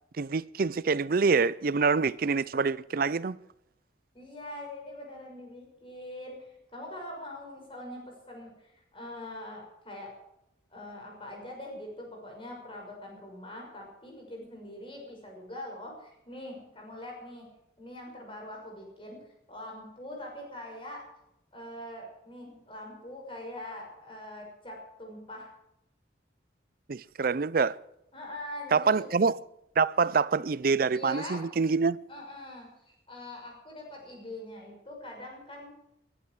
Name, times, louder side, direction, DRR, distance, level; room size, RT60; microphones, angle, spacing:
voice 1, 0.2-3.4 26.9-27.8 28.7-29.4 29.8-32.0, right 4 dB, 50° right, 0.5 m, -26 dB
voice 2, 4.1-10.1 10.7-17.5 17.8-19.2 19.5-21.0 21.5-25.5 28.1-29.1 30.9-31.4 32.1-35.7, left 1 dB, 30° left, 6.1 m, -43 dB
21.5 x 11.5 x 4.8 m
head